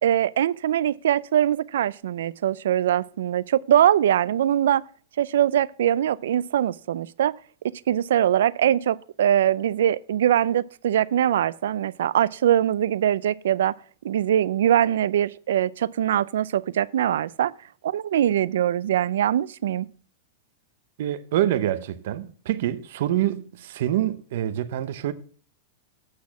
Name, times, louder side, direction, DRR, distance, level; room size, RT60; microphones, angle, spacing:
voice 1, 0.0-4.8 5.2-7.3 7.9-13.8 14.0-17.5 17.8-19.9, right 10 dB, 80° right, 0.4 m, -22 dB
voice 2, 21.0-25.1, right 12 dB, 60° right, 0.8 m, -26 dB
8.4 x 6.3 x 5.8 m
supercardioid pair, 165°, 0 cm